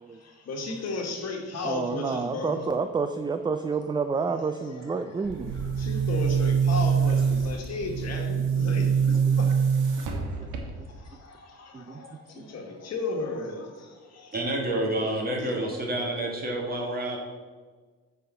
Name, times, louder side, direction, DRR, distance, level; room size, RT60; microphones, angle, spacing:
voice 1, 0.0-2.6 4.3-4.6 4.8-5.2 5.5-9.5 10.9-14.4 15.4-15.5, left 3 dB, 60° left, 2 dB, 1.5 m, -35 dB
voice 2, 1.6-5.5 11.7-12.0, right 5 dB, 15° right, 9 dB, 0.3 m, -29 dB
Boom, 5.2-11.0, right 6 dB, 85° right, 1.2 m, -25 dB
voice 3, 14.3-17.2, right 1 dB, 30° right, -1 dB, 2.0 m, -28 dB
8.1 x 4.2 x 5.4 m, 1.5 s
cardioid pair, 90°, 30 cm